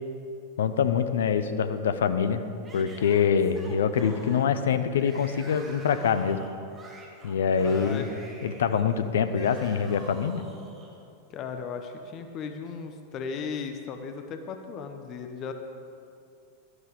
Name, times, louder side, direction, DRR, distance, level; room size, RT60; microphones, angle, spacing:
voice 1, 0.6-2.4 2.7-6.4 7.2-8.1 8.4-10.4, left 7 dB, 60° left, 11 dB, 0.6 m, -25 dB
Yell / Screaming, 2.6-10.9, right 2 dB, 20° right, 2.0 m, -48 dB
voice 2, 7.5-8.1 11.3-15.5, left 6 dB, 35° left, 6 dB, 0.9 m, -36 dB
12.5 x 11.0 x 5.0 m, 2.4 s
figure-of-eight pair, 90°, 0 cm